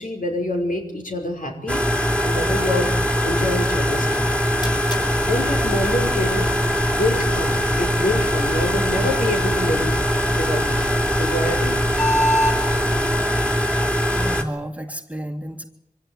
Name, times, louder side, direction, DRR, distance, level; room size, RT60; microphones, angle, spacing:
voice 1, 0.0-1.8 2.2-3.0 3.2-4.5 5.2-6.5 6.9-10.0 10.4-11.8, left 1 dB, 60° left, 2 dB, 5.3 m, -26 dB
sound 1, 1.7-14.4, equal, 5° left, 3.3 m, -21 dB
sound 2, 4.3-12.6, equal, 30° left, 7.6 m, -30 dB
sound 3, 5.2-13.2, right 4 dB, 80° right, 1.7 m, -36 dB
voice 2, 14.1-15.7, equal, 10° right, 4 dB, 2.1 m, -32 dB
24.5 x 16.0 x 9.2 m, 0.84 s
cardioid pair, 45°, 15 cm